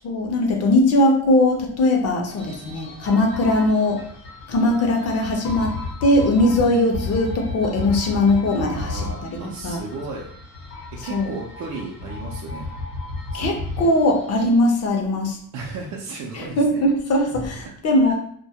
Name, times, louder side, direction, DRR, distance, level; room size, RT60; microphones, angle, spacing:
voice 1, 0.0-4.0 4.5-5.8 6.0-9.1 9.6-9.8 11.1-11.3 13.3-15.4 16.4-18.1, left 1 dB, 45° left, 2 dB, 0.5 m, -20 dB
sound 1, 2.3-14.5, left 3 dB, 80° left, 0.8 m, -34 dB
voice 2, 8.7-10.3 11.0-12.7 13.3-13.9 15.5-16.8 18.0-18.1, right 3 dB, 55° right, -2 dB, 0.4 m, -34 dB
2.2 x 2.1 x 2.7 m, 0.62 s
cardioid pair, 140°, 34 cm